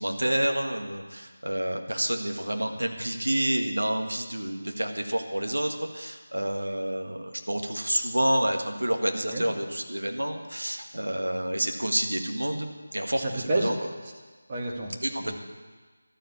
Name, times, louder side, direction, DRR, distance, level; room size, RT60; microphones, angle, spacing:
voice 1, 0.0-13.7 15.0-15.3, right 1 dB, 75° right, 4 dB, 1.7 m, -29 dB
voice 2, 13.1-13.7 14.5-15.3, right 2 dB, 25° right, -2 dB, 1.8 m, -30 dB
12.5 x 7.3 x 8.6 m, 1.4 s
figure-of-eight pair, 165°, 0 cm